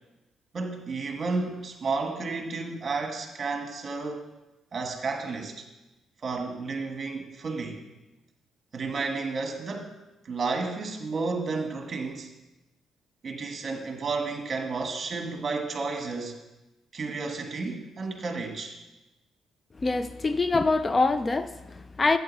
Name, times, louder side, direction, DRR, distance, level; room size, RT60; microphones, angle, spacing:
voice 1, 0.5-4.3 4.7-5.6 6.2-7.8 8.7-10.0 10.2-12.3 13.2-16.4 16.9-18.8, right 4 dB, 40° right, 4 dB, 1.4 m, -32 dB
voice 2, 19.8-22.2, left 3 dB, 25° left, 12 dB, 0.3 m, -25 dB
8.5 x 7.6 x 4.0 m, 1.0 s
cardioid pair, 90°, 0 cm